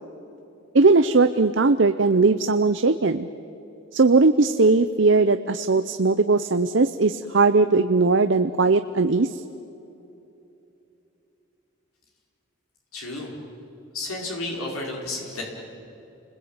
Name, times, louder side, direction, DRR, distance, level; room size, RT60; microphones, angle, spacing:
voice 1, 0.7-3.3 3.9-9.4, right 3 dB, 60° right, 10 dB, 0.7 m, -19 dB
voice 2, 12.9-13.3 13.9-15.4, left 2 dB, 90° left, -1 dB, 4.9 m, -32 dB
29.5 x 21.0 x 8.9 m, 2.9 s
head